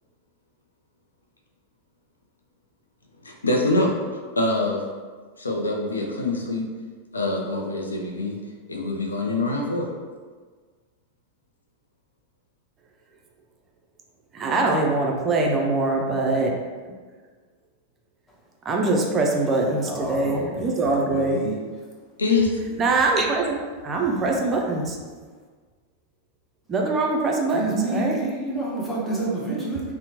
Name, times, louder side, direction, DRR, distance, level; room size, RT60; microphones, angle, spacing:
voice 1, 3.2-4.0 4.4-4.8 5.4-6.7 7.1-8.4 8.7-9.9 22.2-22.6, left 2 dB, 75° left, 0.4 m, -24 dB
voice 2, 14.3-16.5 18.6-21.4 22.8-25.0 26.7-28.2, right 2 dB, 25° right, 0.4 m, -23 dB
voice 3, 19.8-20.4 21.1-21.5 27.5-29.8, right 3 dB, 10° left, 0.7 m, -28 dB
2.7 x 2.0 x 2.8 m
figure-of-eight pair, 90°, 0 cm